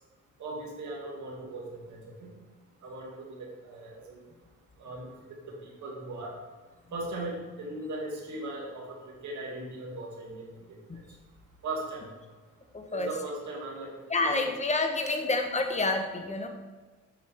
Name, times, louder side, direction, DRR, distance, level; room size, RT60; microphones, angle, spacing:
voice 1, 0.4-2.3 2.8-4.2 4.8-5.1 5.6-6.3 6.9-10.5 10.9-11.0 11.6-12.1 12.9-13.9 14.3-14.5, right 2 dB, 70° right, -2 dB, 2.5 m, -38 dB
voice 2, 12.7-13.1 14.1-16.5, left 2 dB, 25° left, 5 dB, 1.2 m, -28 dB
8.2 x 6.1 x 3.6 m, 1.4 s
cardioid pair, 90°, 30 cm